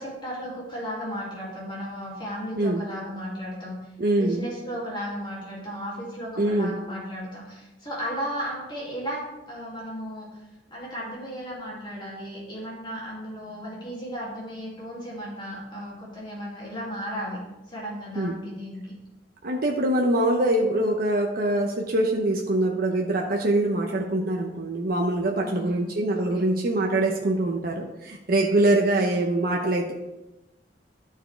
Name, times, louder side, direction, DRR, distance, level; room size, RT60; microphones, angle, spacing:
voice 1, 0.0-3.8 4.1-9.2 9.5-10.3 10.7-17.4 17.7-18.9 24.0-24.2 25.4-25.8 26.1-26.4 28.9-29.0, equal, 25° left, -6 dB, 2.4 m, -35 dB
voice 2, 4.0-4.5 6.4-6.8 18.2-18.4 19.4-29.9, right 1 dB, 55° right, 0 dB, 0.8 m, -24 dB
12.0 x 4.6 x 3.3 m, 1.0 s
head